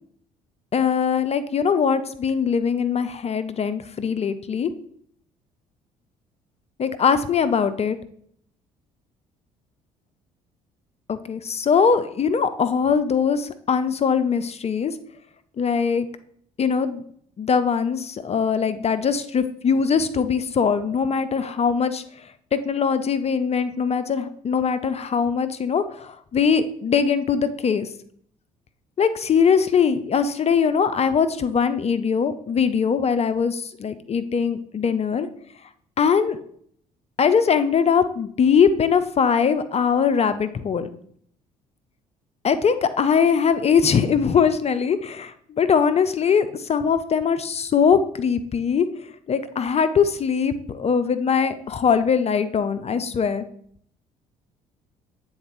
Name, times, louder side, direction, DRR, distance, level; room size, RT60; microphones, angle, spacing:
voice 1, 0.7-4.7 6.8-8.0 11.1-15.0 15.6-16.1 16.6-17.0 17.4-27.9 29.0-35.3 36.0-36.4 37.2-40.9 42.4-48.9 49.3-53.4, left 6 dB, 35° left, 11 dB, 0.5 m, -21 dB
8.6 x 3.9 x 3.0 m, 0.63 s
hypercardioid pair, 50°, 19 cm